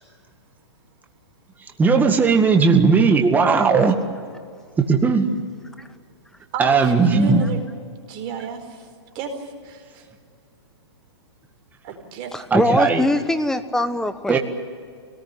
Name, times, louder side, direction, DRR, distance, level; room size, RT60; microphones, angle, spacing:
voice 1, 1.8-4.0 4.8-5.3 6.6-7.4 12.5-13.0 14.3-14.4, right 5 dB, 10° right, 4 dB, 1.9 m, -17 dB
voice 2, 3.5-3.9 12.3-14.4, left 1 dB, 5° left, 10 dB, 1.2 m, -22 dB
voice 3, 6.5-7.6 8.1-8.9 9.1-10.0 11.8-12.3, right 6 dB, 35° right, 4 dB, 4.5 m, -32 dB
25.0 x 19.0 x 9.9 m, 2.2 s
hypercardioid pair, 135°, 14 cm